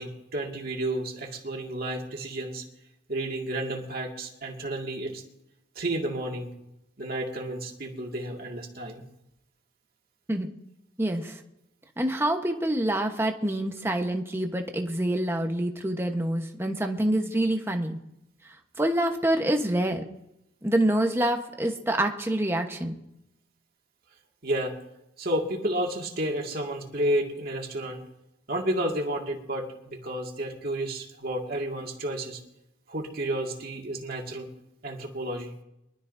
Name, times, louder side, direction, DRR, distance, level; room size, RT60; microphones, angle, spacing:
voice 1, 0.0-2.6 3.1-5.2 5.8-6.5 7.0-9.0 24.4-24.7 25.2-28.0 28.5-32.4 32.9-34.5 34.8-35.5, right 1 dB, 50° right, 1 dB, 2.1 m, -31 dB
voice 2, 11.0-11.4 12.0-18.0 18.8-20.0 20.6-22.9, right 1 dB, 15° right, 4 dB, 1.1 m, -26 dB
24.0 x 12.5 x 2.7 m, 0.85 s
head